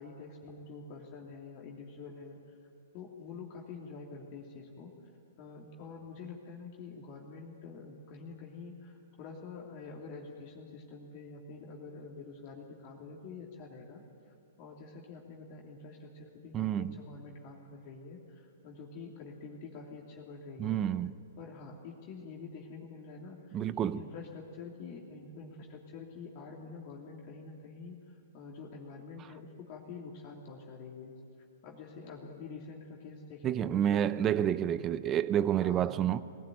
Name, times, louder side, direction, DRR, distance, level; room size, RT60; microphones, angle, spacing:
voice 1, 0.0-2.4 2.9-4.9 5.4-14.0 14.6-20.8 21.4-31.1 31.6-34.9 35.6-36.0, left 4 dB, 45° left, 3.0 m, -47 dB
voice 2, 16.5-16.9 20.6-21.1 23.5-24.0 33.4-36.2, right 10 dB, 25° right, 0.7 m, -29 dB
21.5 x 16.5 x 9.3 m
hypercardioid pair, 115°, 0 cm